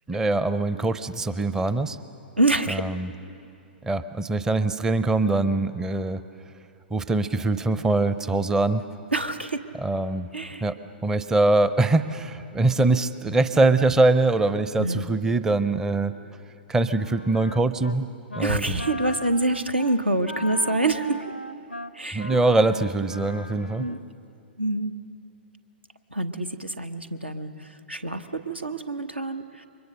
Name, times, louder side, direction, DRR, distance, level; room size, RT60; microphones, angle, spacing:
voice 1, 0.1-2.0 2.7-3.1 3.8-6.2 6.9-8.8 9.8-10.3 10.6-10.8 11.0-16.1 16.7-18.1 18.4-18.8 22.1-23.9, right 2 dB, 10° right, 13 dB, 0.6 m, -23 dB
voice 2, 2.4-2.8 9.1-9.7 10.3-10.6 14.8-15.0 18.4-21.3 21.9-22.3 23.8-24.0 24.6-24.9 26.1-29.7, right 2 dB, 80° right, 9 dB, 1.1 m, -26 dB
Wind instrument woodwind instrument, 16.8-18.0 18.3-18.5 18.8-24.1, left 1 dB, 90° left, 0.5 m, -37 dB
29.0 x 23.5 x 6.7 m, 2.7 s
figure-of-eight pair, 110°, 6 cm